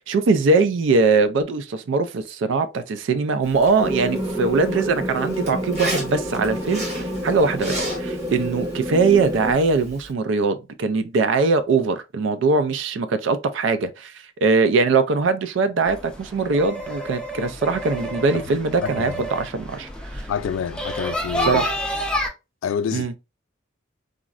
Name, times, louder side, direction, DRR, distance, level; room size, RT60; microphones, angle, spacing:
voice 1, 0.0-14.1 14.4-20.2 21.4-21.7 22.9-23.1, right 4 dB, 70° right, 0.4 m, -21 dB
Zipper (clothing), 3.4-10.1, equal, 35° right, 1.3 m, -35 dB
sound 1, 3.8-9.5, equal, 20° right, 0.9 m, -28 dB
sound 2, 15.9-22.3, equal, 5° left, 0.5 m, -29 dB
voice 2, 18.8-19.2 20.3-21.6 22.6-23.2, left 7 dB, 85° left, 0.3 m, -28 dB
3.6 x 2.0 x 2.4 m
head